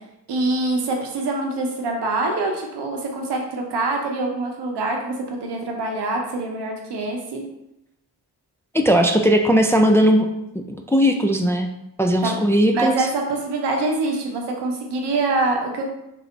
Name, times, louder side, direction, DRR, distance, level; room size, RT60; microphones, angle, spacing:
voice 1, 0.3-7.4 12.2-12.4 12.7-15.9, right 2 dB, 85° right, 1 dB, 0.8 m, -25 dB
voice 2, 8.7-10.3 10.5-11.7 12.0-13.1, equal, 5° left, 3 dB, 0.3 m, -18 dB
3.8 x 2.0 x 4.4 m, 0.85 s
cardioid pair, 60°, 40 cm